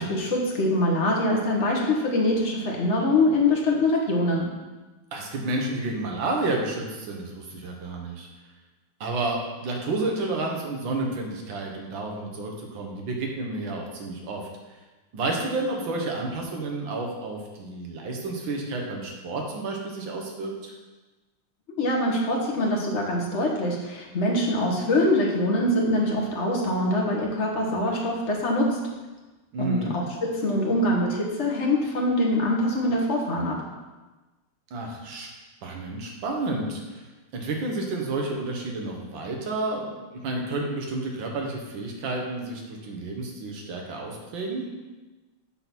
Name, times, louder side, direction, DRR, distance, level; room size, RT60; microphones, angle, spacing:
voice 1, 0.0-4.5 21.8-28.8 29.6-33.7, left 1 dB, 40° left, -1 dB, 1.3 m, -24 dB
voice 2, 5.1-8.3 9.0-14.5 15.1-20.7 29.5-30.0 34.7-35.3 35.6-37.0 37.3-44.7, right 2 dB, 70° right, 1 dB, 1.9 m, -30 dB
8.0 x 3.9 x 5.9 m, 1.2 s
omnidirectional pair, 2.3 m